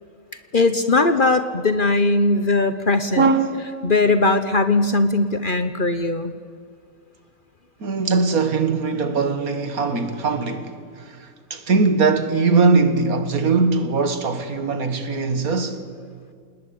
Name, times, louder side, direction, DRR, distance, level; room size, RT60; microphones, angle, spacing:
voice 1, 0.5-3.3 3.8-6.3, left 3 dB, 40° left, 1.0 m, -19 dB
voice 2, 3.2-3.8 7.8-15.8, right 4 dB, 70° right, 2.1 m, -21 dB
28.0 x 19.5 x 8.8 m
omnidirectional pair, 1.6 m